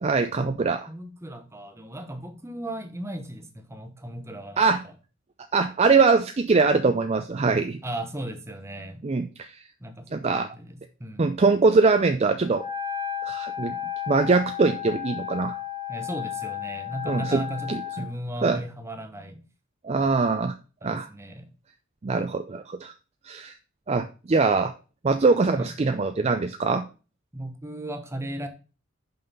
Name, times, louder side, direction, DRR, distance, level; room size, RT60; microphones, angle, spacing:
voice 1, 0.0-0.8 4.6-4.8 5.5-7.8 9.0-9.6 10.1-10.5 11.2-12.6 13.2-13.8 14.1-15.5 17.1-17.4 17.7-18.1 18.4-18.6 19.8-20.5 20.8-21.1 22.0-22.9 23.2-23.5 23.9-24.7 25.0-26.9, right 4 dB, 30° right, 7 dB, 0.4 m, -22 dB
voice 2, 0.9-4.9 7.8-9.1 9.8-11.3 15.9-19.4 20.8-21.5 25.6-25.7 27.3-28.5, right 1 dB, 15° right, 6 dB, 0.9 m, -36 dB
Wind instrument woodwind instrument, 12.5-18.1, left 9 dB, 20° left, 1.1 m, -33 dB
5.7 x 5.6 x 5.4 m, 0.34 s
head